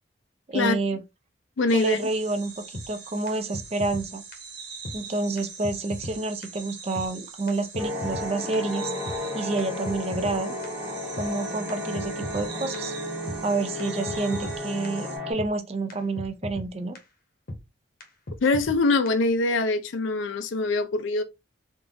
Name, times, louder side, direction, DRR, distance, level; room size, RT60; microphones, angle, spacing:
voice 1, 0.5-1.0 1.7-4.2 4.9-8.9 9.3-10.5 11.2-12.9 13.4-17.0, right 3 dB, 30° right, 0.4 m, -29 dB
voice 2, 1.6-2.1 18.4-21.2, left 3 dB, 75° left, 0.5 m, -23 dB
sound 1, 1.7-15.2, right 5 dB, 55° right, 1.2 m, -43 dB
sound 2, 2.7-2.9 3.3-3.4 3.5-4.0 4.3-4.4 4.8-5.0 5.4-5.5 5.6-6.2 6.4-6.5 7.0-7.1 7.5-7.6 7.7-8.3 8.5-8.6 9.1-9.2 9.6-10.4 10.6-10.7 11.2-11.3 11.7-11.8 12.0-12.5 12.7-12.8 13.3-13.4 13.8-13.9 14.1-14.6 14.8-14.9 15.4-15.5 15.9-16.7 17.0-17.1 17.5-17.6 18.0-18.1 18.3-18.8 19.1-19.2, left 1 dB, 50° left, 0.8 m, -36 dB
sound 3, 7.8-15.3, left 1 dB, 5° right, 0.9 m, -33 dB
3.7 x 2.5 x 2.6 m
head